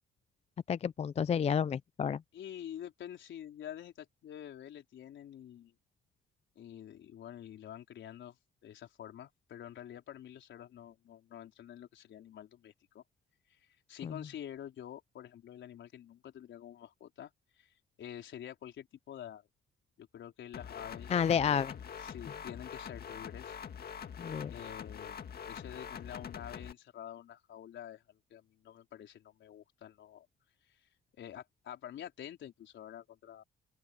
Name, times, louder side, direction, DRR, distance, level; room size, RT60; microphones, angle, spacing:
voice 1, 0.7-2.2 14.0-14.1 21.1-21.7 24.2-24.5, left 7 dB, 35° left, 0.4 m, -30 dB
voice 2, 2.3-5.7 6.6-8.4 8.6-13.0 13.5-13.6 13.9-17.3 17.6-19.5 20.0-21.7 22.0-23.6 24.4-25.2 25.5-30.3 30.7-30.8 31.2-33.4, left 10 dB, 70° left, 4.5 m, -48 dB
sound 1, 20.5-26.7, left 7 dB, 50° left, 1.9 m, -44 dB
open air
cardioid pair, 90°, 20 cm